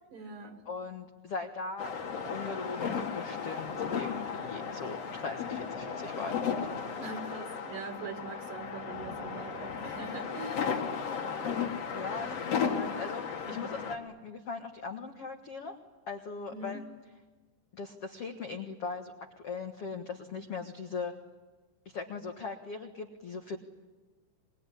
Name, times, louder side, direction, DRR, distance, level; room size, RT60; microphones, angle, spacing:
voice 1, 0.1-0.6 7.0-10.8 13.4-13.7 16.5-16.8, right 3 dB, 55° right, 5 dB, 3.3 m, -43 dB
voice 2, 0.6-1.9 2.3-6.3 6.6-6.8 11.9-15.7 16.1-16.8 17.7-19.1 19.4-21.1 21.8-23.6, left 4 dB, 70° left, 4 dB, 1.4 m, -39 dB
sound 1, 1.8-14.0, left 6 dB, 45° left, 2.4 m, -35 dB
26.0 x 21.5 x 10.0 m, 1.3 s
omnidirectional pair, 5.2 m